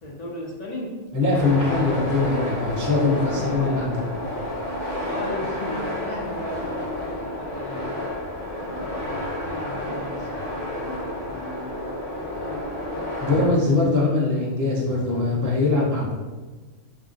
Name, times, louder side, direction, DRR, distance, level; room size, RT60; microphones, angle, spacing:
voice 1, 0.0-0.9 3.3-3.7 5.0-8.0 8.6-12.0 12.4-12.7, left 1 dB, 55° left, -4 dB, 0.4 m, -36 dB
voice 2, 1.1-3.9 13.2-16.1, left 3 dB, 20° right, -4 dB, 0.5 m, -22 dB
sound 1, 1.3-13.5, left 1 dB, 75° left, 1.2 m, -30 dB
2.5 x 2.0 x 3.8 m, 1.3 s
omnidirectional pair, 1.3 m